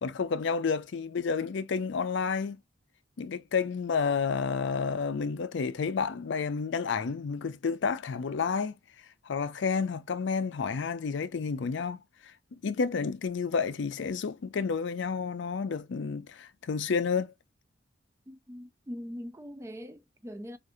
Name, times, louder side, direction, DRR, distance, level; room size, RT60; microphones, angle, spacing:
voice 1, 0.0-2.6 3.2-8.7 9.2-12.3 12.6-17.3, left 5 dB, 65° left, 0.4 m, -30 dB
voice 2, 18.3-20.6, equal, 15° right, 0.4 m, -42 dB
4.7 x 2.5 x 2.6 m
head